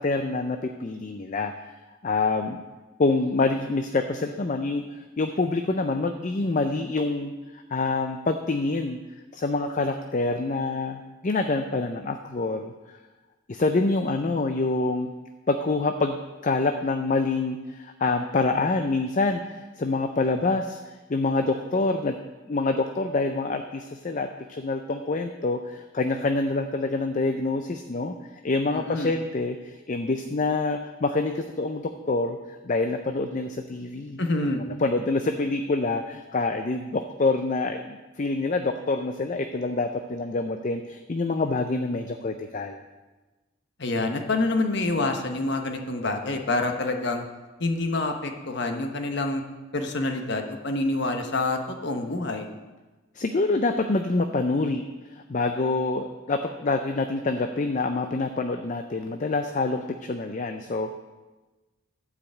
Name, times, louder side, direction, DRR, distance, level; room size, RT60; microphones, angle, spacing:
voice 1, 0.0-1.5 2.0-2.6 3.0-9.0 9.3-12.7 13.5-15.1 15.5-22.2 22.5-28.2 28.4-34.2 34.6-42.8 53.2-54.8 55.1-60.9, left 3 dB, 35° left, 6 dB, 0.5 m, -26 dB
voice 2, 28.7-29.1 34.2-34.6 43.8-47.2 47.6-49.4 49.7-52.5, left 2 dB, 55° left, 5 dB, 1.1 m, -27 dB
12.0 x 5.0 x 7.8 m, 1.2 s
head